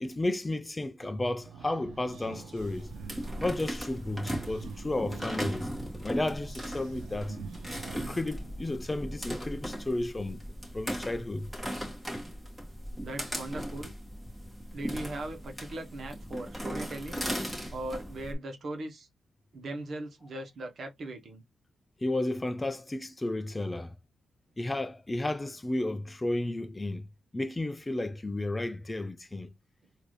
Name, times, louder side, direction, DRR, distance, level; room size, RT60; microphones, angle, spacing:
voice 1, 0.0-2.9 3.4-5.7 6.0-7.4 7.9-10.4 10.7-11.5 22.0-23.9 24.6-27.1 27.3-29.5, left 2 dB, 15° left, 0.4 m, -33 dB
sound 1, 1.0-9.1, right 7 dB, 90° right, 0.5 m, -47 dB
sound 2, 2.6-18.3, equal, 10° right, 2.0 m, -38 dB
voice 2, 13.0-13.9 14.7-17.3 17.7-19.1 19.5-21.4, right 2 dB, 55° right, 1.2 m, -39 dB
3.9 x 2.7 x 3.2 m
cardioid pair, 110°, 0 cm